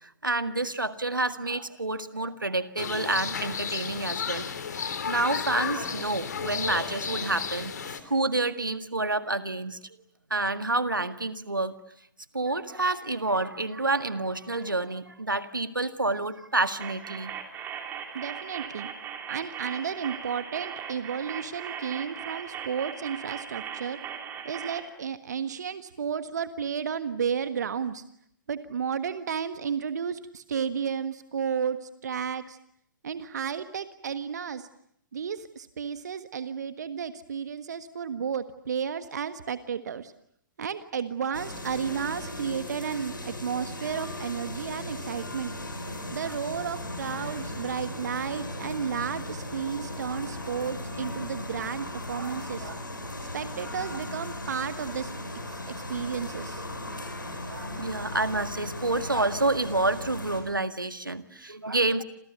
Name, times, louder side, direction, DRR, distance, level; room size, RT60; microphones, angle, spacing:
voice 1, 0.0-4.5 4.7-9.8 10.3-11.7 12.3-17.3 50.1-50.2 52.2-52.8 57.5-62.0, right 2 dB, 80° right, 11 dB, 1.8 m, -29 dB
sound 1, 2.8-8.0, left 6 dB, 60° left, 3.3 m, -33 dB
sound 2, 16.8-24.8, right 8 dB, 20° right, 3.7 m, -38 dB
voice 2, 18.1-18.9 19.3-24.0 24.4-28.0 28.5-32.6 33.0-34.7 35.1-40.1 40.6-45.5 46.1-52.7 53.3-55.1 55.5-56.6, right 7 dB, 60° right, 12 dB, 1.5 m, -32 dB
sound 3, 41.3-60.4, left 1 dB, 80° left, 7.5 m, -37 dB
29.5 x 28.0 x 6.9 m, 0.70 s
figure-of-eight pair, 120°, 11 cm